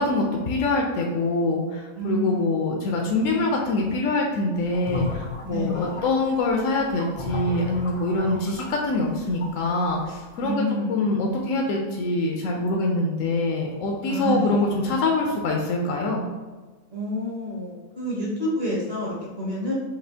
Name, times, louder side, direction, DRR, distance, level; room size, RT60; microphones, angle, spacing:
voice 1, 0.0-10.6 10.9-16.3, left 2 dB, 70° left, 0 dB, 1.0 m, -24 dB
voice 2, 1.9-2.5 5.5-6.0 10.4-11.0 14.1-14.6 16.9-19.7, equal, 45° right, -5 dB, 1.7 m, -28 dB
sound 1, 4.6-9.9, left 4 dB, 35° left, 0.5 m, -34 dB
6.0 x 2.7 x 2.7 m, 1.3 s
omnidirectional pair, 1.5 m